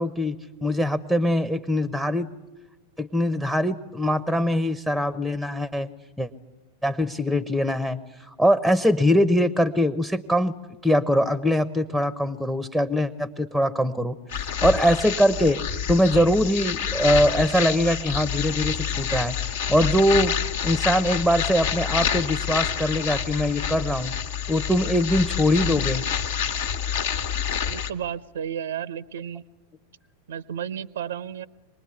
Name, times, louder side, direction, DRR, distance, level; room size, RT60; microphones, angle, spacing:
voice 1, 0.0-2.3 3.0-5.9 6.2-6.3 6.8-8.0 8.4-10.5 10.8-15.6 15.9-20.3 20.6-24.1 24.5-26.0, equal, ahead, 15 dB, 0.8 m, -22 dB
sound 1, 14.3-27.9, left 8 dB, 60° left, 1.3 m, -28 dB
voice 2, 27.7-29.4 30.3-31.5, right 9 dB, 60° right, 20 dB, 0.7 m, -32 dB
25.0 x 20.5 x 9.6 m, 1.2 s
figure-of-eight pair, 90°, 0 cm